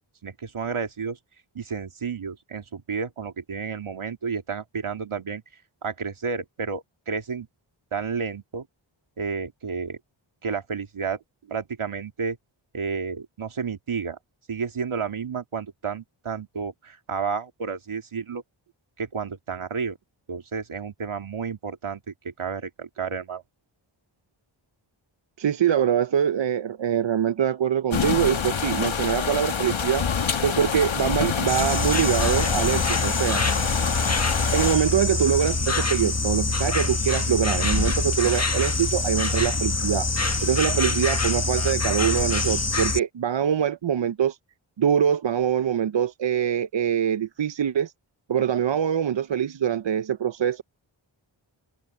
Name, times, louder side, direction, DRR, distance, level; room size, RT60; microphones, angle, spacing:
voice 1, 0.2-1.2 1.6-5.4 5.8-7.5 7.9-8.7 9.2-10.0 10.4-11.2 11.5-12.4 12.7-14.2 14.5-18.4 19.0-20.0 20.3-23.4, right 5 dB, 80° right, 1.9 m, -31 dB
voice 2, 25.4-30.1 30.4-33.4 34.5-40.1 40.4-44.4 44.8-47.9 48.3-50.6, right 9 dB, 65° right, 0.6 m, -24 dB
sound 1, 27.9-34.8, left 6 dB, 70° left, 1.3 m, -26 dB
Insect, 31.5-43.0, left 3 dB, 30° left, 1.5 m, -25 dB
open air
wide cardioid pair, 65°, 49 cm